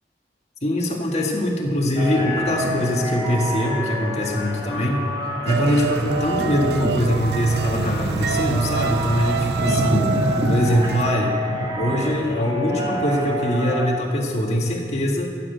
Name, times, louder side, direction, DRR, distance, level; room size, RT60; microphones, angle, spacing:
voice 1, 0.6-5.0 5.4-10.1 10.5-11.4 11.8-15.3, equal, 40° left, 0 dB, 1.9 m, -22 dB
sound 1, 2.0-13.9, equal, 25° right, 2.5 m, -27 dB
sound 2, 5.5-11.1, right 5 dB, 65° right, 0.4 m, -26 dB
15.0 x 7.7 x 7.9 m, 2.2 s
head